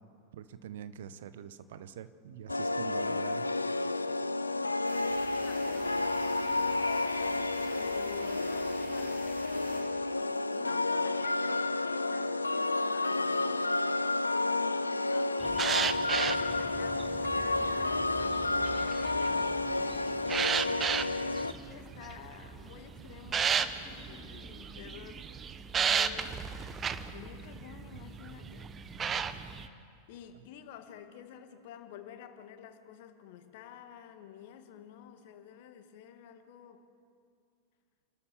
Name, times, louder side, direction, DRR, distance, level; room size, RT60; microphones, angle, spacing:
voice 1, 0.3-3.5, right 9 dB, 55° right, 13 dB, 0.9 m, -44 dB
sound 1, 2.5-21.5, left 2 dB, 80° left, 0.5 m, -31 dB
voice 2, 4.3-9.3 10.5-13.8 14.8-20.3 21.2-25.3 25.8-26.5 27.1-28.7 30.1-36.8, left 9 dB, 50° left, 8 dB, 1.7 m, -50 dB
sound 2, 4.8-9.8, right 1 dB, 80° right, 6.2 m, -49 dB
sound 3, 15.4-29.7, right 7 dB, 25° right, 0.9 m, -35 dB
29.0 x 12.5 x 7.1 m, 2.3 s
figure-of-eight pair, 90°, 0 cm